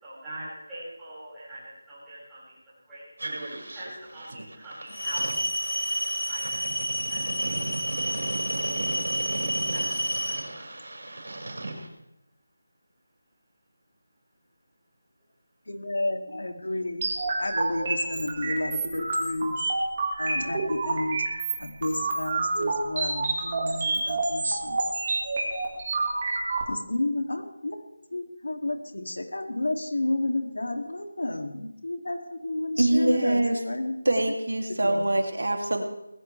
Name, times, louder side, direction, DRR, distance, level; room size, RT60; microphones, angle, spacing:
voice 1, 0.0-3.1 3.7-5.3 5.6-8.1 9.7-10.8, right 1 dB, 5° right, -12 dB, 5.5 m, -45 dB
sound 1, 3.2-11.9, right 2 dB, 65° right, 5.7 m, -36 dB
sound 2, 4.9-10.3, equal, 25° left, 5.1 m, -30 dB
voice 2, 15.7-17.1 17.4-19.6 20.2-21.2 21.6-24.8 26.7-27.8 28.1-34.0 34.8-35.1, left 2 dB, 80° left, 4 dB, 2.7 m, -31 dB
sound 3, 17.0-26.6, right 3 dB, 20° right, 2.1 m, -28 dB
voice 3, 32.8-33.6 34.0-35.8, right 1 dB, 80° right, 3 dB, 2.8 m, -24 dB
20.0 x 17.0 x 3.4 m, 0.90 s
figure-of-eight pair, 180°, 0 cm